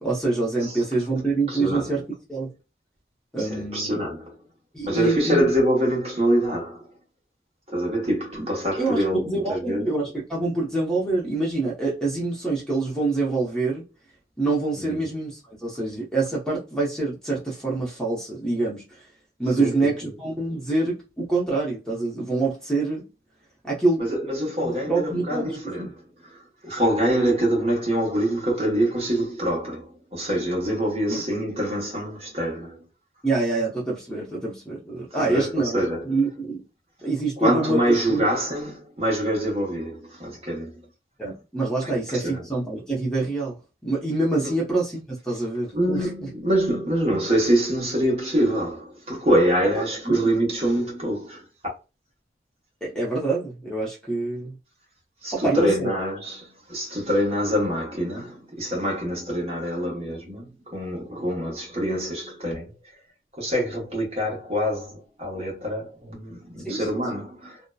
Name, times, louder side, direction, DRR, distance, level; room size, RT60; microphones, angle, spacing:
voice 1, 0.0-2.0 2.3-2.5 3.3-4.0 4.7-5.4 8.8-13.8 14.4-18.8 19.4-19.9 20.2-23.1 23.6-24.1 24.6-25.9 31.1-31.2 33.2-35.8 36.0-36.6 37.0-38.2 41.2-43.6 43.8-46.3 50.1-50.3 52.8-54.5 55.3-55.9 66.6-66.8, right 3 dB, 5° left, 0.7 m, -26 dB
voice 2, 0.6-1.2 1.5-1.9 3.4-4.3 4.8-6.8 7.7-9.9 14.9-15.0 19.6-19.9 24.0-25.9 26.3-32.8 35.1-36.2 37.4-40.8 41.8-42.4 44.4-44.6 45.7-51.5 55.2-62.7 63.4-67.6, right 1 dB, 35° right, 1.0 m, -25 dB
2.7 x 2.1 x 2.2 m
head